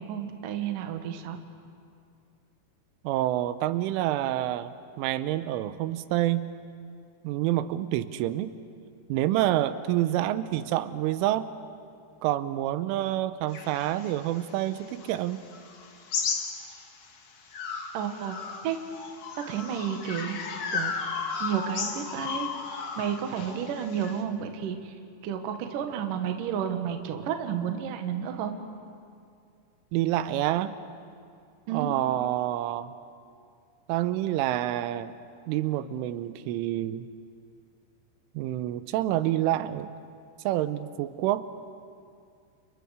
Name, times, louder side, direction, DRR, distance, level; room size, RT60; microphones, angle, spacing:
voice 1, 0.0-1.4 17.9-18.4 18.6-18.8 19.4-20.4 20.7-20.9 21.4-22.5 23.0-25.0 25.2-28.5 31.7-31.9, right 8 dB, 65° right, 6 dB, 2.3 m, -31 dB
voice 2, 3.0-6.5 7.2-8.6 9.1-11.5 12.2-15.4 29.9-30.8 31.7-32.9 33.9-35.1 35.5-37.1 38.3-39.9 40.4-41.4, right 13 dB, 90° right, 13 dB, 3.3 m, -28 dB
sound 1, 13.5-17.1 17.5-24.2, left 5 dB, 80° left, 1.3 m, -35 dB
30.0 x 29.5 x 5.0 m, 2.3 s
omnidirectional pair, 5.5 m